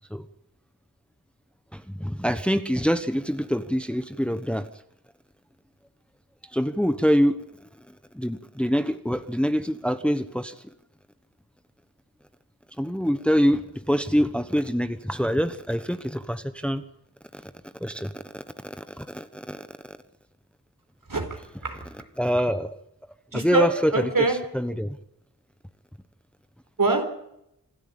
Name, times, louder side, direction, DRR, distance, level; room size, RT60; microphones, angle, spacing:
voice 1, 1.7-4.7 6.5-7.4 8.1-10.5 12.8-16.8 17.3-17.5 17.8-20.0 22.2-22.8 23.3-23.9 24.5-25.0, equal, 5° left, 10 dB, 1.1 m, -25 dB
voice 2, 21.1-21.9 23.3-24.4 26.8-27.0, right 2 dB, 60° right, 5 dB, 4.5 m, -24 dB
26.0 x 13.0 x 8.6 m, 0.81 s
wide cardioid pair, 75°, 37 cm